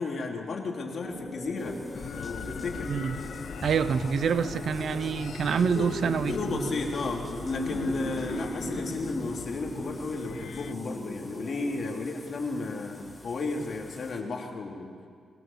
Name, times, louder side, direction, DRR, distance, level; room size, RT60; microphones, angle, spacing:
voice 1, 0.0-1.8 2.1-2.9 5.7-5.9 6.3-14.9, left 3 dB, 55° left, 3.0 m, -33 dB
sound 1, 1.0-11.7, equal, 10° right, 5.8 m, -38 dB
sound 2, 1.6-14.2, left 2 dB, 20° left, 2.3 m, -50 dB
sound 3, 1.9-10.7, left 8 dB, 70° left, 0.5 m, -40 dB
voice 2, 3.6-6.7 7.8-7.9, right 7 dB, 70° right, 0.7 m, -27 dB
21.5 x 19.0 x 7.2 m
cardioid pair, 115°, 0 cm